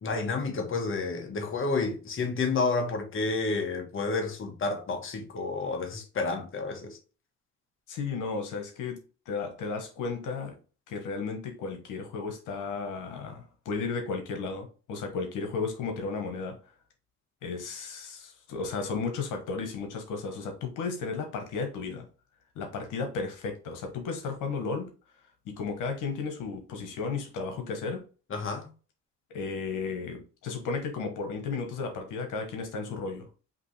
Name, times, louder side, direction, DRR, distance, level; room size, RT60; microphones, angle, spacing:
voice 1, 0.0-7.0 28.3-28.7, left 3 dB, 45° left, 1.2 m, -30 dB
voice 2, 7.9-10.6 10.9-16.6 17.4-22.1 22.5-24.9 25.4-28.0 29.3-33.3, left 4 dB, 90° left, 1.2 m, -34 dB
5.2 x 2.9 x 3.3 m
cardioid pair, 90°, 30 cm